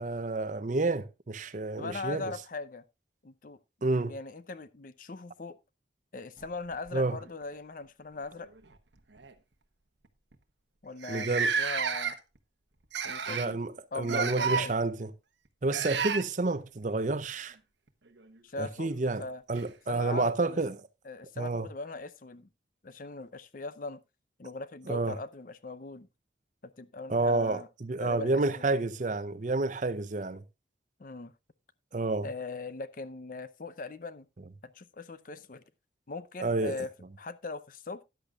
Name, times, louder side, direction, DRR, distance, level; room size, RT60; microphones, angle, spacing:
voice 1, 0.0-2.3 3.8-4.1 6.9-7.2 11.1-11.5 13.3-15.1 15.6-17.6 18.6-19.2 19.5-20.7 21.4-21.7 24.9-25.2 27.1-30.4 31.9-32.3 36.4-36.8, right 3 dB, 40° right, 0.6 m, -29 dB
voice 2, 1.8-2.8 3.2-3.6 4.0-5.6 6.1-8.5 10.8-12.1 13.0-13.6 13.9-14.8 18.4-19.4 19.9-20.6 21.0-22.5 22.8-24.0 24.4-26.1 26.6-27.7 28.0-28.7 31.0-31.3 32.2-34.2 34.7-35.6 36.1-36.9 37.2-38.0, left 3 dB, 45° left, 0.6 m, -40 dB
sound 1, 6.4-7.5 8.6-8.8 9.1-9.3 10.0-10.1 10.3-10.4 11.0-12.4 12.9-13.5 14.0-14.7 15.7-16.2 18.4-18.5 19.5-19.6, right 6 dB, 75° right, 1.1 m, -31 dB
13.5 x 10.5 x 2.4 m
head